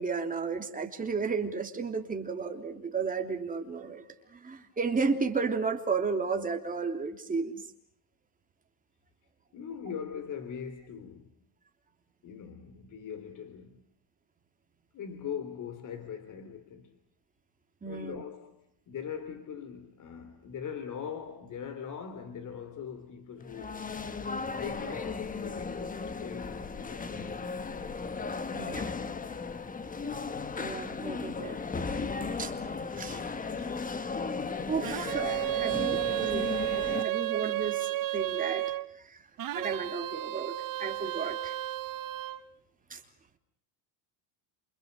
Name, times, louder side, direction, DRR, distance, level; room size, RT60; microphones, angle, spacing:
voice 1, 0.0-4.0 4.3-7.6 17.8-18.2 28.6-28.8 30.6-31.6 32.4-32.5 33.0-33.2 34.7-36.5 37.0-38.7 39.0-39.2 39.5-41.5 42.9-43.0, right 5 dB, 15° right, 3.3 m, -33 dB
voice 2, 9.5-11.3 12.2-13.9 14.9-16.9 17.9-23.8 24.4-27.3 28.3-29.0 33.6-33.7, left 7 dB, 40° left, 3.2 m, -42 dB
sound 1, 23.4-37.0, left 4 dB, 15° left, 1.3 m, -36 dB
sound 2, 34.8-38.9 39.4-42.4, right 16 dB, 45° right, 1.5 m, -32 dB
29.5 x 29.0 x 6.4 m
cardioid pair, 155°, 48 cm